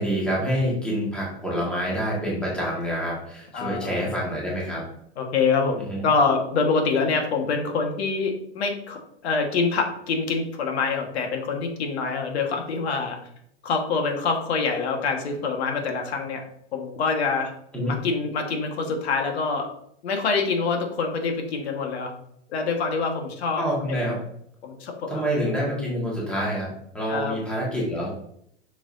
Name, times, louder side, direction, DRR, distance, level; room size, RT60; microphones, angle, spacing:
voice 1, 0.0-4.8 5.9-6.0 17.7-17.9 23.6-24.2 25.1-28.1, equal, 5° left, -5 dB, 1.6 m, -27 dB
voice 2, 3.5-4.0 5.2-13.2 13.6-16.4 16.7-17.5 17.9-19.7 20.0-22.1 22.5-23.6 23.9-24.0 24.6-25.2 27.1-27.4, left 4 dB, 70° left, 3 dB, 1.5 m, -25 dB
6.4 x 6.1 x 2.6 m, 0.70 s
supercardioid pair, 160°, 34 cm